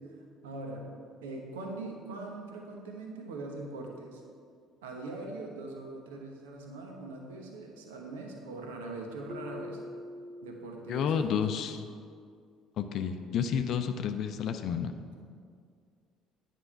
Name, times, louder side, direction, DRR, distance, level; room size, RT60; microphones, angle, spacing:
voice 1, 0.4-0.8 1.2-4.2 4.8-9.8 10.4-11.5, right 2 dB, 70° right, 2 dB, 1.0 m, -41 dB
Keyboard (musical), 9.3-12.1, left 2 dB, 5° right, 0.6 m, -46 dB
voice 2, 10.9-11.8 12.8-14.9, left 7 dB, 50° left, 8 dB, 0.5 m, -30 dB
9.9 x 5.1 x 5.8 m, 2.2 s
figure-of-eight pair, 55°, 0 cm